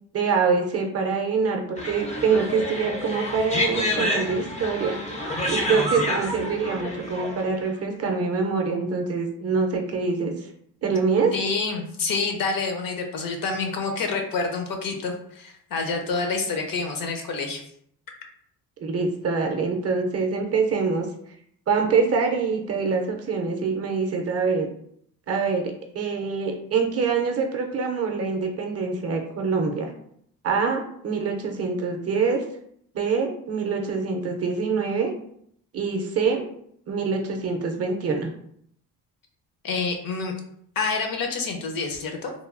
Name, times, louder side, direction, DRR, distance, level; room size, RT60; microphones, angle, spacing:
voice 1, 0.1-4.9 5.5-10.3 10.8-11.3 18.8-21.1 21.7-24.7 25.3-29.9 30.4-32.4 32.9-35.1 35.7-36.5 36.9-38.3, right 5 dB, 40° right, 3 dB, 0.5 m, -25 dB
sound 1, 1.8-7.7, left 1 dB, 20° left, 0.4 m, -28 dB
voice 2, 11.3-17.6 39.6-40.3 40.8-42.3, left 4 dB, 60° left, 4 dB, 0.6 m, -27 dB
3.0 x 2.2 x 2.4 m, 0.69 s
cardioid pair, 125°, 38 cm